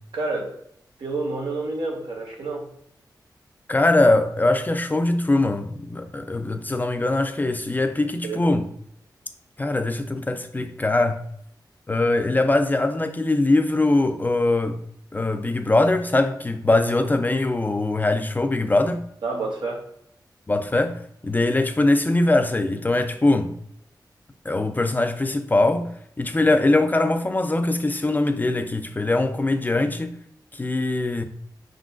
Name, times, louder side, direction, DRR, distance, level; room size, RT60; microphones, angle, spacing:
voice 1, 0.1-0.6 1.0-2.7 8.2-8.4 19.2-19.9, right 3 dB, 85° right, 1.1 m, -29 dB
voice 2, 3.7-8.7 9.6-11.2 11.9-14.8 15.1-19.0 20.5-23.5 24.4-25.9 26.2-30.1 30.5-31.2, left 2 dB, 25° left, 0.4 m, -22 dB
5.3 x 3.7 x 2.4 m
wide cardioid pair, 90°, 8 cm